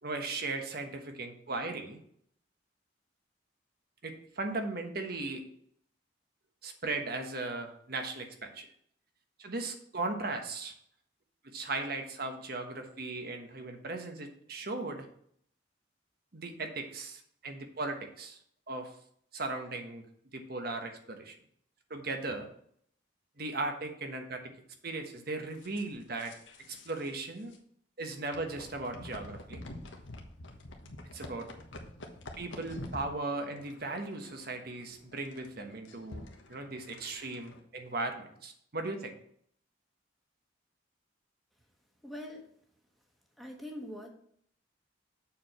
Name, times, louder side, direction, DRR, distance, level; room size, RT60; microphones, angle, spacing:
voice 1, 0.0-2.0 4.0-5.5 6.6-8.7 9.4-10.7 11.4-15.1 16.3-18.4 18.7-18.9 19.3-20.0 20.3-21.3 21.9-22.5 23.4-24.5 24.8-26.3 26.7-27.5 28.0-29.6 31.1-31.5 32.4-39.2, right 3 dB, 55° right, 5 dB, 1.3 m, -37 dB
sound 1, 25.6-27.1 27.4-27.6 28.3-37.6, left 1 dB, 90° left, 1.2 m, -48 dB
voice 2, 42.0-42.5 43.4-44.1, equal, ahead, 0 dB, 1.4 m, -42 dB
7.3 x 4.7 x 5.6 m, 0.66 s
head